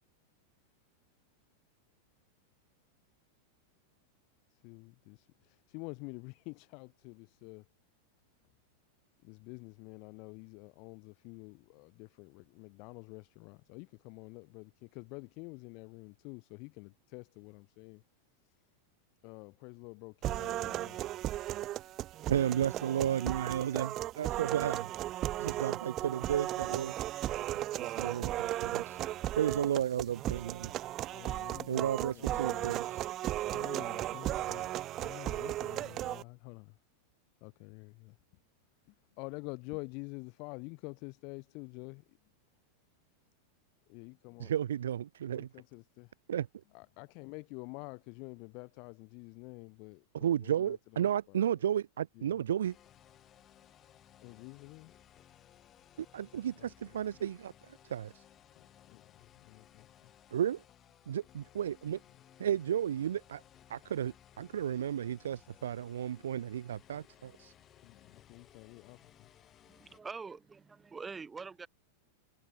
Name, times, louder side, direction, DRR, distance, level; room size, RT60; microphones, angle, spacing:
voice 1, 4.6-7.6 9.2-18.0 19.2-21.0 31.1-32.8 33.5-34.7 34.9-36.8 37.4-38.1 39.2-42.0 43.9-44.5 45.3-46.1 46.7-51.4 52.2-52.3 54.2-54.9 56.6-56.7 58.6-60.1 67.8-69.3, left 32 dB, 45° left, 1.3 m, -48 dB
sound 1, 20.2-36.2, right 14 dB, 35° right, 2.0 m, -36 dB
voice 2, 22.3-24.9 25.4-26.9 28.0-28.3 28.6-29.0 29.4-30.7 31.7-33.0 44.4-45.5 46.3-46.5 50.1-52.7 56.1-57.5 57.8-58.2 60.3-60.6 61.1-62.0 62.4-63.4 63.7-67.5, right 10 dB, 65° right, 0.3 m, -33 dB
sound 2, 52.6-70.0, left 11 dB, 30° left, 7.5 m, -61 dB
voice 3, 69.7-71.7, right 5 dB, 15° right, 2.2 m, -44 dB
figure-of-eight pair, 90°, 0 cm